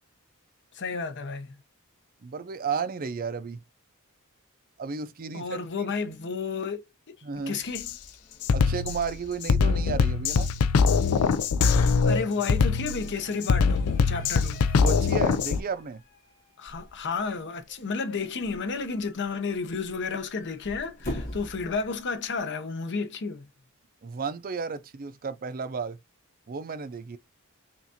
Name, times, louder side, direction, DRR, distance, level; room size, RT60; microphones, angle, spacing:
voice 1, 0.7-1.6 5.3-6.8 7.5-8.0 12.0-14.6 16.6-23.5, left 4 dB, 55° left, 0.8 m, -32 dB
voice 2, 2.2-3.6 4.8-5.6 7.2-7.6 8.5-10.5 14.8-16.0 24.0-26.0 26.5-27.2, right 5 dB, 40° right, 0.5 m, -33 dB
sound 1, 7.3-22.4, left 1 dB, 40° left, 1.9 m, -46 dB
Drum kit, 7.7-7.9 8.4-15.6, left 5 dB, 85° left, 0.4 m, -23 dB
5.7 x 2.5 x 2.8 m
head